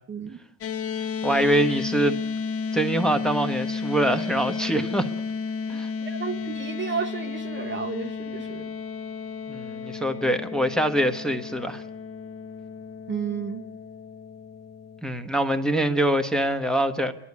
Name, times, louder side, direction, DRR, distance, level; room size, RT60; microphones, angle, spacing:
voice 1, 0.1-0.4 6.0-8.8 13.1-13.6, right 6 dB, 25° right, 0.9 m, -32 dB
sound 1, 0.6-15.0, left 5 dB, 30° left, 1.0 m, -33 dB
voice 2, 1.2-2.2 2.7-5.1 5.7-5.9 9.5-11.8 15.0-17.1, right 1 dB, ahead, 1.1 m, -24 dB
29.5 x 11.5 x 9.7 m
cardioid pair, 150°, 48 cm